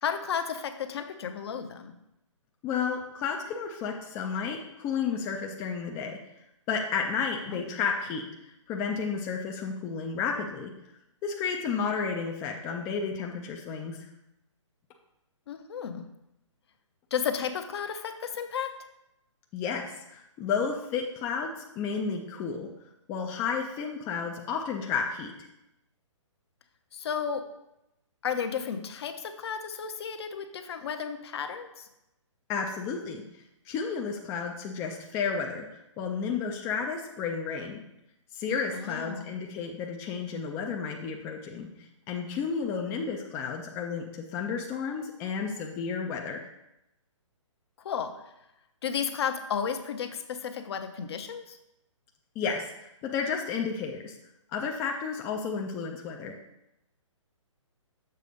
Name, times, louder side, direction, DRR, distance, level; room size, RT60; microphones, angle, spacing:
voice 1, 0.0-1.9 7.5-7.8 15.5-16.0 17.1-18.8 26.9-27.4 28.2-31.9 38.7-39.3 47.8-48.1 48.8-51.6, left 7 dB, 55° left, 8 dB, 0.7 m, -33 dB
voice 2, 2.6-6.2 6.7-10.7 11.2-14.1 19.5-22.7 23.1-25.3 32.5-33.2 33.7-35.6 36.0-37.8 38.3-41.7 42.1-46.5 52.4-54.2 54.5-56.4, left 6 dB, 15° left, 2 dB, 0.4 m, -32 dB
6.8 x 4.1 x 5.0 m, 0.87 s
hypercardioid pair, 145°, 16 cm